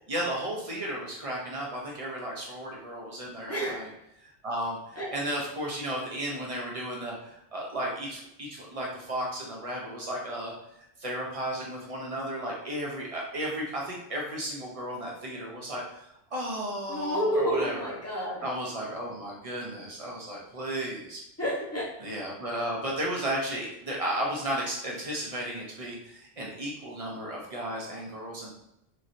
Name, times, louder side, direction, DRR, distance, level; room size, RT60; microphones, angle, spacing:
voice 1, 0.1-3.9 4.2-17.9 18.4-21.2 22.0-28.5, right 1 dB, 35° right, -2 dB, 0.8 m, -34 dB
voice 2, 3.5-3.9 4.9-5.1 16.9-18.4 21.4-21.9, equal, 15° left, -5 dB, 0.7 m, -29 dB
3.1 x 2.6 x 2.6 m, 0.82 s
omnidirectional pair, 1.1 m